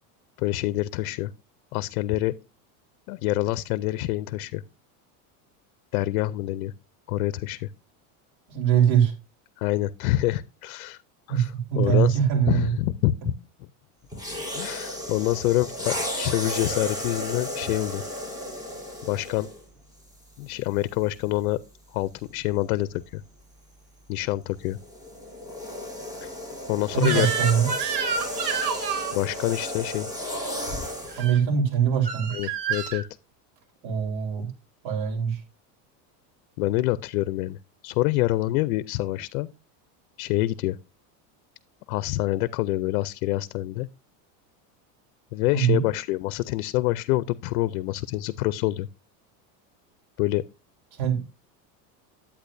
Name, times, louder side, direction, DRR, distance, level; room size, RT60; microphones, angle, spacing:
voice 1, 0.4-1.3 1.7-2.3 3.1-4.6 5.9-6.7 7.1-7.7 9.6-11.0 11.3-12.2 12.5-13.3 14.5-18.0 19.0-19.5 20.4-21.6 21.9-23.2 24.1-24.8 26.2-26.3 26.7-27.3 29.1-30.1 32.3-33.0 36.6-39.5 40.2-40.8 41.9-43.9 45.3-48.9 50.2-50.4, left 17 dB, 90° left, 0.5 m, -26 dB
voice 2, 8.5-9.1 11.3-12.7 13.2-13.3 26.9-27.7 31.2-32.3 33.8-34.5 34.8-35.4 45.5-45.8 50.9-51.2, right 8 dB, 65° right, 3.8 m, -22 dB
sound 1, 14.1-19.6 20.5-20.7 24.6-31.3, left 1 dB, 10° right, 4.2 m, -33 dB
Crying sobbing / Screech, 27.0-29.2 31.1-31.4 32.0-33.0, right 7 dB, 80° right, 3.3 m, -29 dB
10.0 x 8.6 x 2.6 m
supercardioid pair, 135°, 43 cm